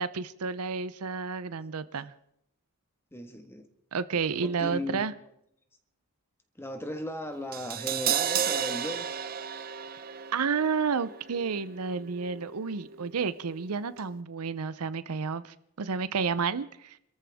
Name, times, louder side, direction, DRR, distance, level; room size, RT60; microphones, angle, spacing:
voice 1, 0.0-2.1 3.9-5.1 10.3-17.0, right 5 dB, 85° right, 15 dB, 0.7 m, -31 dB
voice 2, 3.1-3.7 4.4-5.0 6.5-9.1, left 1 dB, 10° left, 6 dB, 1.6 m, -36 dB
Crash cymbal, 7.5-13.7 13.9-14.1, right 8 dB, 40° right, 0.7 m, -34 dB
26.5 x 14.0 x 3.5 m, 0.75 s
head